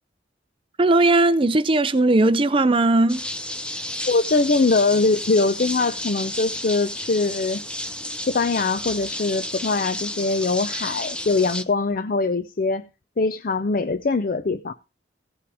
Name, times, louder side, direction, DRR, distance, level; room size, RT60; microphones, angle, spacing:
voice 1, 0.8-3.2, right 2 dB, 30° right, 0.5 m, -18 dB
Shower Binaural, 3.1-11.6, left 1 dB, 5° left, 0.8 m, -32 dB
voice 2, 4.1-7.6 8.2-12.8 13.2-14.7, left 3 dB, 50° left, 0.5 m, -22 dB
16.5 x 5.9 x 4.8 m
head